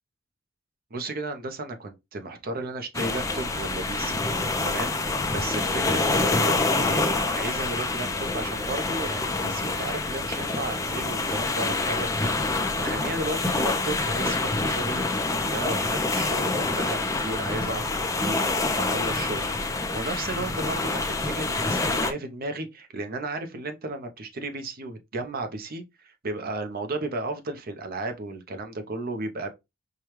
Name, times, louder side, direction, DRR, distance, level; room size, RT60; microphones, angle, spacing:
voice 1, 0.9-4.2 4.6-15.0 15.5-18.4 18.8-29.5, right 2 dB, 50° right, 0.7 m, -34 dB
sound 1, 2.9-22.1, left 3 dB, 15° left, 0.5 m, -26 dB
4.8 x 2.3 x 3.0 m
head